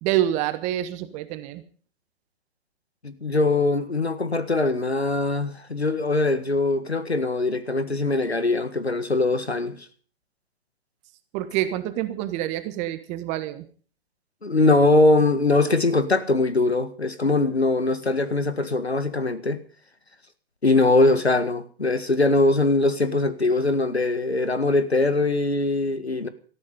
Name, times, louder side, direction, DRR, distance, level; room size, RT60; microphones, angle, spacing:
voice 1, 0.0-1.6 11.3-13.6, right 13 dB, 20° right, 1.4 m, -27 dB
voice 2, 3.0-9.8 14.4-19.6 20.6-26.3, left 2 dB, 85° left, 1.9 m, -22 dB
18.5 x 13.5 x 5.3 m
figure-of-eight pair, 120°, 31 cm